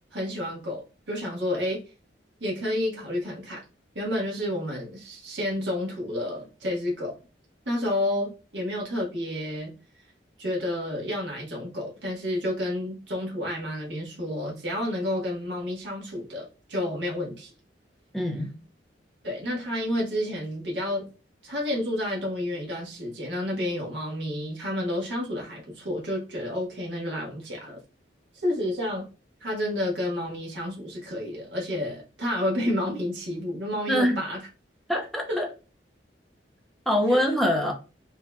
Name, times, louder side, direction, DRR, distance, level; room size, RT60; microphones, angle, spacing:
voice 1, 0.1-1.8 2.4-3.6 3.9-7.1 7.6-9.7 10.4-17.5 19.2-21.1 21.4-27.8 28.3-29.1 29.4-34.4 35.3-35.4 37.1-37.2, left 1 dB, 90° right, 1.4 m, -30 dB
voice 2, 18.1-18.6 33.9-34.2 34.9-35.5 36.9-37.7, equal, ahead, 0.7 m, -24 dB
5.4 x 2.8 x 2.3 m
head